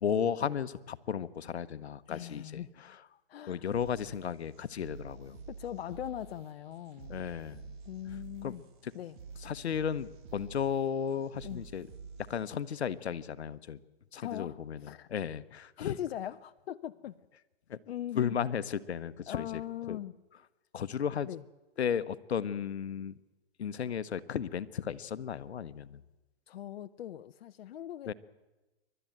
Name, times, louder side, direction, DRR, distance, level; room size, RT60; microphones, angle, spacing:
voice 1, 0.0-3.0 3.5-5.4 7.1-7.7 8.4-8.5 8.8-8.9 9.4-11.9 12.3-13.8 14.1-15.9 17.7-17.8 18.1-19.6 19.9-20.0 20.7-21.3 21.8-23.1 23.6-26.0 28.1-28.2, left 8 dB, 85° left, 14 dB, 1.1 m, -34 dB
voice 2, 2.1-2.7 3.3-3.6 5.5-7.2 7.9-8.6 8.9-9.2 11.4-11.6 14.2-15.1 15.8-17.2 17.9-18.4 19.3-20.2 21.3-21.4 26.5-28.1, left 11 dB, 65° left, 10 dB, 0.7 m, -40 dB
sound 1, 3.7-12.7, right 5 dB, 50° right, 3.4 m, -49 dB
28.0 x 12.5 x 9.2 m, 1.1 s
hypercardioid pair, 130°, 32 cm